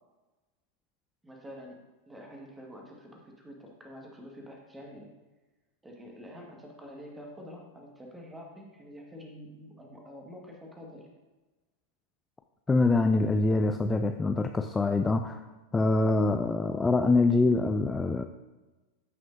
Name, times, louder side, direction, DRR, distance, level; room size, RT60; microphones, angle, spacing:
voice 1, 1.2-1.8 2.1-5.1 5.8-11.0, equal, 10° right, 0 dB, 1.7 m, -47 dB
voice 2, 12.7-15.5 15.7-18.2, left 3 dB, 10° left, 7 dB, 0.3 m, -25 dB
14.0 x 5.9 x 2.6 m, 1.2 s
figure-of-eight pair, 90°, 0 cm